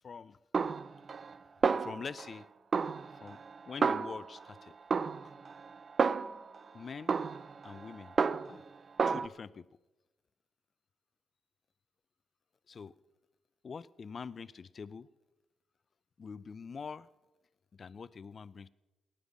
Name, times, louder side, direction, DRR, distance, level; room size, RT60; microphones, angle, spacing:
voice 1, 0.0-0.4 1.8-2.5 3.2-3.4 3.7-4.7 6.7-7.1 7.6-8.2 8.5-8.6 9.1-9.7 12.7-12.9 13.6-15.1 16.2-17.1 17.8-18.7, left 5 dB, 50° left, 19 dB, 0.5 m, -44 dB
Snare drum, 0.5-1.4 1.6-2.4 2.7-4.5 4.9-6.6 7.1-8.7 9.0-9.3, right 5 dB, 50° right, 0.5 m, -31 dB
17.5 x 10.0 x 6.2 m, 1.1 s
hypercardioid pair, 45°, 0 cm